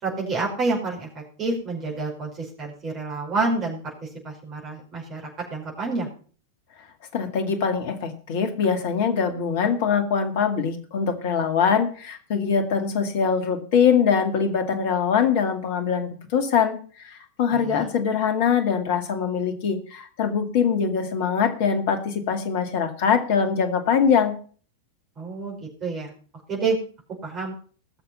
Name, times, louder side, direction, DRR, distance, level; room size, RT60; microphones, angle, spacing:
voice 1, 0.0-3.8 4.2-5.2 5.5-6.1 17.5-17.9 25.2-26.1 26.5-26.8 27.2-27.5, right 3 dB, 30° right, -3 dB, 5.3 m, -28 dB
voice 2, 7.1-24.3, left 6 dB, 50° left, 7 dB, 2.1 m, -23 dB
19.0 x 6.9 x 5.6 m, 0.43 s
figure-of-eight pair, 90°, 0 cm